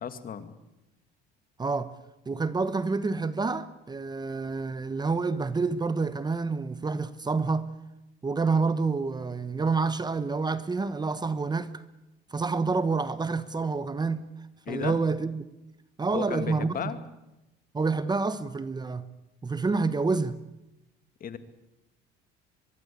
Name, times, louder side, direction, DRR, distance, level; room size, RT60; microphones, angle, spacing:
voice 1, 0.0-0.5 14.7-15.0 16.1-17.0 21.2-21.4, left 7 dB, 45° left, 2.2 m, -34 dB
voice 2, 1.6-1.9 2.3-7.7 8.2-11.8 12.3-14.3 14.7-15.5 16.0-16.9 17.7-19.0 19.4-20.4, right 4 dB, 20° right, 1.1 m, -28 dB
23.5 x 22.0 x 8.6 m
cardioid pair, 110°, 21 cm